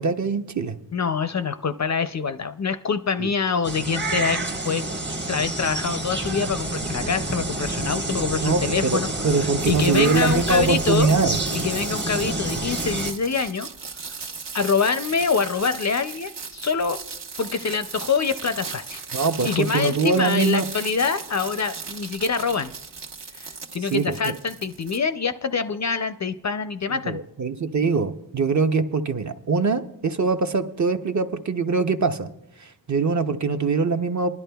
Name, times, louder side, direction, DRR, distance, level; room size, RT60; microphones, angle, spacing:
voice 1, 0.0-0.8 3.2-3.3 8.4-11.7 19.1-20.7 23.9-24.3 26.9-32.3 32.6-34.3, right 4 dB, 40° right, 8 dB, 0.6 m, -23 dB
voice 2, 0.9-4.9 5.3-11.1 11.5-13.7 14.5-17.0 17.4-19.0 19.4-22.7 23.3-27.2, left 5 dB, 40° left, 11 dB, 0.4 m, -25 dB
sound 1, 3.6-13.1, right 2 dB, 25° right, 0.9 m, -28 dB
sound 2, 9.6-25.0, right 5 dB, 65° right, 1.1 m, -37 dB
21.0 x 11.0 x 2.3 m, 0.84 s
wide cardioid pair, 75°, 46 cm